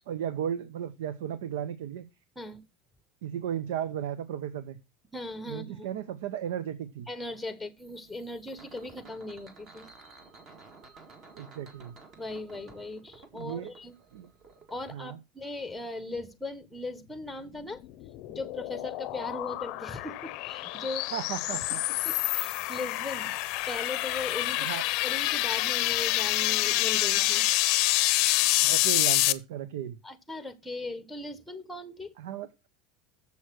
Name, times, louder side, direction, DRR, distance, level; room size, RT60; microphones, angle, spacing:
voice 1, 0.0-2.1 3.2-4.8 5.5-7.1 11.4-12.0 13.3-13.7 14.1-14.3 14.9-15.2 21.1-21.8 24.6-24.8 28.6-30.0 32.2-32.7, right 9 dB, 85° right, 0.7 m, -35 dB
voice 2, 5.1-5.9 7.1-9.9 12.2-13.9 14.7-17.8 18.3-21.1 22.0-23.3 23.7-24.7 25.0-27.5 30.0-32.1, left 2 dB, ahead, 1.0 m, -38 dB
sound 1, 7.8-14.8, right 3 dB, 30° right, 1.8 m, -53 dB
sound 2, 17.6-29.3, left 19 dB, 50° left, 0.6 m, -27 dB
7.0 x 6.4 x 6.1 m
supercardioid pair, 155°, 0 cm